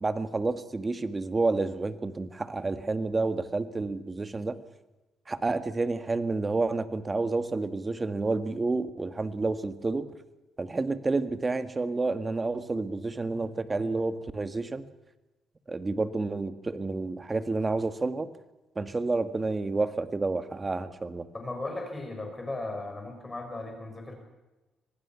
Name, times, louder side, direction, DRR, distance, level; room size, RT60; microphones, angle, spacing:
voice 1, 0.0-4.6 5.3-10.1 10.6-14.9 15.7-18.3 18.8-21.3, right 3 dB, 25° right, 10 dB, 1.7 m, -29 dB
voice 2, 21.3-24.1, left 2 dB, 20° left, 3 dB, 6.1 m, -36 dB
25.5 x 19.0 x 5.9 m, 1.1 s
cardioid pair, 90°, 0 cm